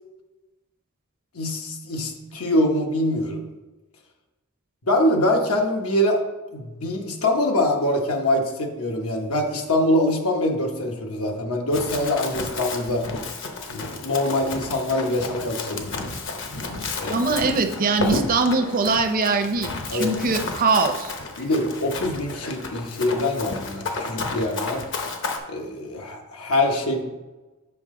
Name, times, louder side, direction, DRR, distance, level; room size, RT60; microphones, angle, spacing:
voice 1, 1.3-3.5 4.8-6.2 6.5-13.0 13.7-16.1 17.0-17.3 19.9-20.1 21.4-24.8 25.5-27.0, left 1 dB, 85° left, 2 dB, 1.0 m, -24 dB
Run, 11.7-25.4, left 3 dB, 60° left, 0.9 m, -32 dB
voice 2, 17.1-21.1, right 3 dB, 40° right, 6 dB, 0.6 m, -22 dB
7.0 x 5.5 x 3.7 m, 1.1 s
head